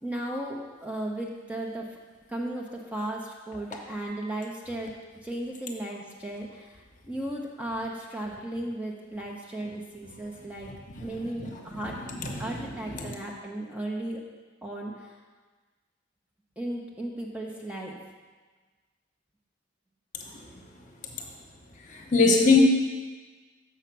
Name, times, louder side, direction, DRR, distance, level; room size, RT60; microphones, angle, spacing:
voice 1, 0.0-1.9 2.3-4.9 5.2-10.7 11.0-12.0 12.4-14.2 14.6-15.2 16.6-18.0, right 1 dB, 5° right, -2 dB, 0.7 m, -35 dB
voice 2, 11.8-13.1 20.2-20.4 21.1-21.2 21.9-22.6, left 4 dB, 40° left, 1 dB, 1.0 m, -24 dB
6.8 x 5.6 x 6.1 m, 1.4 s
head